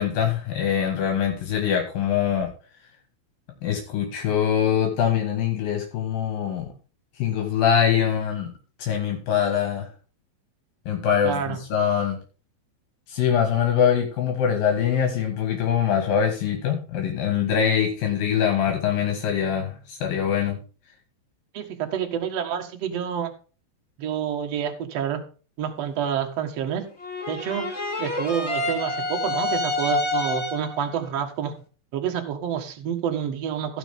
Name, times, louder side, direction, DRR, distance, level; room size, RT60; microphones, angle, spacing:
voice 1, 0.0-2.5 3.6-6.7 7.2-8.5 8.8-9.9 10.9-12.2 13.1-20.6, left 8 dB, 75° left, 4 dB, 3.5 m, -23 dB
voice 2, 11.2-11.6 21.5-23.3 24.0-25.2 25.6-26.8 27.3-27.6 28.0-31.5 31.9-33.8, right 8 dB, 55° right, 4 dB, 2.3 m, -28 dB
sound 1, 27.0-30.8, left 2 dB, 30° left, 1.3 m, -27 dB
16.0 x 6.4 x 3.6 m, 0.36 s
omnidirectional pair, 4.2 m